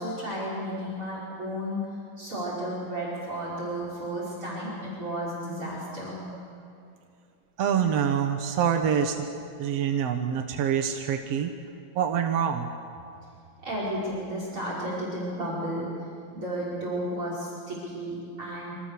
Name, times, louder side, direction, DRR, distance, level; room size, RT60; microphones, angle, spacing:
voice 1, 0.0-6.3 13.6-16.1 16.3-18.7, equal, 40° right, -5 dB, 6.3 m, -33 dB
voice 2, 7.6-9.3 9.6-11.6 12.0-12.7, right 8 dB, 60° right, 5 dB, 1.9 m, -26 dB
27.5 x 26.0 x 6.9 m, 2.4 s
omnidirectional pair, 3.8 m